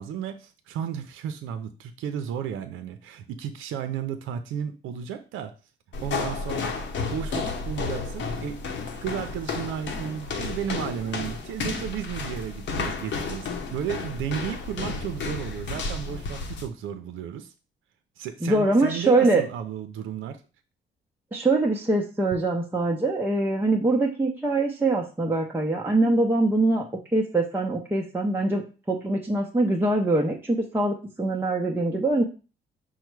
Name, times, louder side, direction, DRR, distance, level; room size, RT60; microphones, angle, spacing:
voice 1, 0.0-5.5 6.0-8.6 9.0-17.5 18.2-20.4, right 8 dB, 85° right, 8 dB, 0.5 m, -33 dB
sound 1, 5.9-16.7, left 4 dB, 65° left, 0.8 m, -32 dB
voice 2, 18.4-19.4 21.3-26.9 27.1-28.6 28.9-32.2, right 2 dB, 10° right, -1 dB, 0.6 m, -23 dB
5.4 x 2.1 x 4.5 m, 0.34 s
cardioid pair, 90°, 20 cm